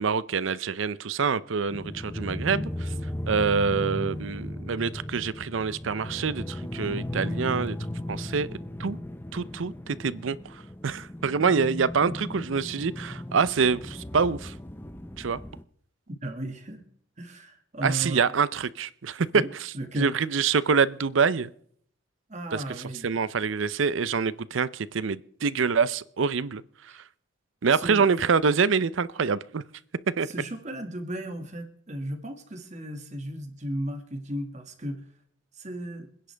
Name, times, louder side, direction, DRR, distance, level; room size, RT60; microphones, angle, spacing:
voice 1, 0.0-2.9 3.3-7.8 8.1-8.5 8.8-9.0 9.3-14.5 15.2-15.4 17.8-21.5 22.5-22.6 23.0-27.0 27.6-29.6 30.1-30.3, right 5 dB, 75° right, 0.6 m, -26 dB
sound 1, 1.7-15.6, left 1 dB, 10° left, 0.6 m, -36 dB
voice 2, 16.1-16.8 17.2-18.2 19.3-19.5 19.7-20.1 22.3-23.1 26.9-27.0 27.7-28.1 30.2-35.0 35.5-36.1, right 1 dB, 35° right, 1.9 m, -35 dB
26.5 x 10.0 x 3.4 m
head